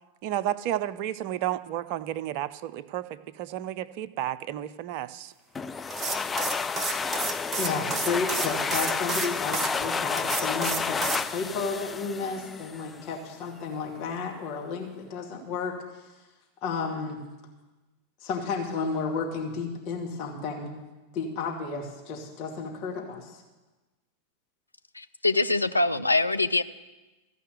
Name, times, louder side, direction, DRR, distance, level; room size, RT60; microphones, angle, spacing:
voice 1, 0.2-5.3, right 12 dB, 45° right, 15 dB, 0.5 m, -32 dB
sound 1, 5.6-13.0, left 5 dB, 15° left, 0.3 m, -30 dB
sound 2, 5.9-9.7 10.2-11.2, right 4 dB, 20° right, 1.0 m, -31 dB
voice 2, 7.5-16.0 16.6-17.2 18.2-20.7 21.1-23.4, left 4 dB, 40° left, -1 dB, 2.2 m, -32 dB
voice 3, 24.9-26.6, left 2 dB, 85° left, 9 dB, 0.4 m, -24 dB
14.5 x 5.6 x 9.1 m, 1.1 s
figure-of-eight pair, 90°, 0 cm